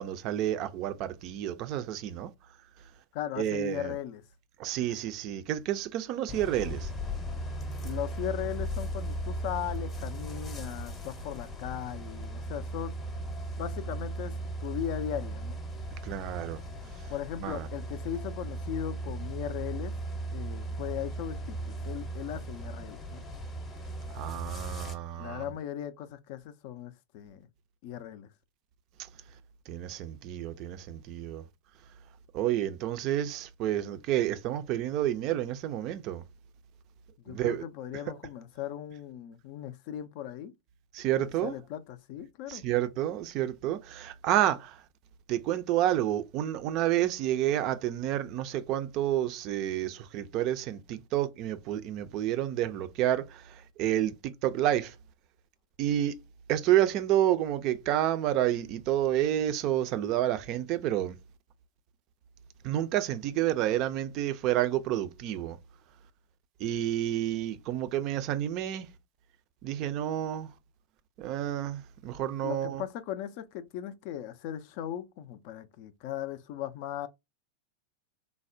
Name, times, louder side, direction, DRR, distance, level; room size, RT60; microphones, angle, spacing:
voice 1, 0.0-2.3 3.4-3.9 4.6-6.9 16.0-16.6 17.4-17.7 24.1-25.4 29.7-31.4 32.3-36.2 37.3-37.6 37.9-38.0 40.9-41.5 42.5-44.8 45.3-54.9 55.8-56.1 56.5-61.2 62.6-65.6 66.6-68.9 69.6-70.5 71.2-72.8, right 12 dB, 40° right, 0.4 m, -29 dB
voice 2, 3.1-4.2 7.8-13.0 13.6-15.6 17.1-19.9 20.3-23.2 25.2-27.5 27.8-28.3 37.2-40.5 41.2-42.6 72.4-77.1, left 10 dB, 45° left, 0.3 m, -38 dB
sound 1, 6.3-24.9, right 1 dB, 20° left, 0.7 m, -37 dB
3.3 x 2.0 x 2.5 m
figure-of-eight pair, 90°, 0 cm